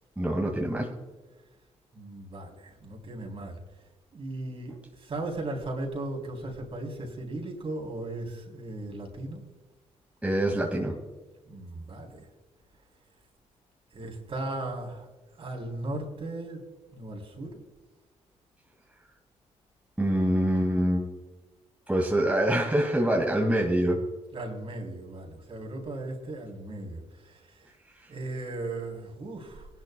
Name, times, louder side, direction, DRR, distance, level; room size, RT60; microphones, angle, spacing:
voice 1, 0.2-0.9 10.2-11.0 20.0-21.1 21.9-24.0, right 1 dB, 10° right, 0 dB, 2.1 m, -25 dB
voice 2, 1.9-3.6 4.1-9.4 11.5-12.3 13.9-15.1 15.4-16.6 16.9-17.6 24.3-27.7 28.1-29.7, right 2 dB, 50° right, 1 dB, 3.6 m, -37 dB
20.0 x 11.0 x 2.3 m, 1.2 s
cardioid pair, 65°, 12 cm